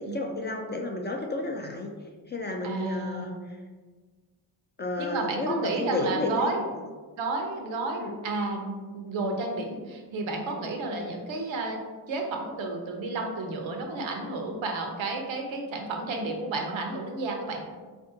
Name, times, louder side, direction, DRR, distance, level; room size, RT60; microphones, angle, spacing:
voice 1, 0.0-1.9 2.3-3.3 4.8-6.6 8.0-8.1 10.9-11.0, left 2 dB, 25° left, 1 dB, 0.3 m, -31 dB
voice 2, 2.6-3.3 5.0-6.7 7.2-11.8 12.1-17.6, right 3 dB, 70° right, 2 dB, 0.7 m, -31 dB
3.4 x 2.6 x 2.6 m, 1.4 s
supercardioid pair, 50°, 48 cm